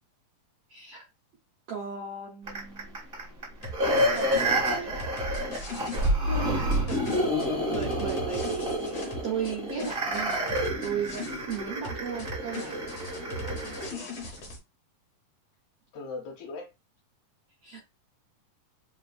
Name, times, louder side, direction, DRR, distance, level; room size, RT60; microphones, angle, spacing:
voice 1, 0.7-1.1 1.7-3.0 3.5-3.8 4.1-4.9 6.3-12.8 17.6-17.8, right 7 dB, 70° right, 1.5 m, -36 dB
sound 1, 2.5-13.9 14.4-14.5, equal, 30° right, 1.0 m, -29 dB
sound 2, 3.6-6.1 6.7-9.5 9.8-11.6 11.8-14.6, left 1 dB, 55° left, 1.8 m, -39 dB
voice 2, 6.4-7.0 13.4-14.1 15.9-16.7, left 4 dB, 70° left, 2.5 m, -42 dB
5.0 x 3.0 x 2.5 m
omnidirectional pair, 3.9 m